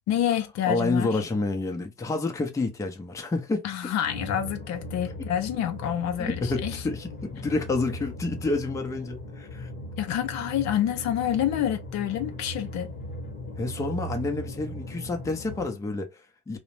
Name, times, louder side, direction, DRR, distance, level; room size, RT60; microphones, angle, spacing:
voice 1, 0.0-1.2 3.6-6.8 10.0-12.9, left 10 dB, 55° left, 0.5 m, -28 dB
voice 2, 0.6-3.7 6.2-9.7 13.6-16.6, left 3 dB, 10° left, 0.5 m, -29 dB
sound 1, 4.1-15.7, left 1 dB, 30° left, 0.9 m, -38 dB
2.5 x 2.0 x 3.0 m
supercardioid pair, 100°, 33 cm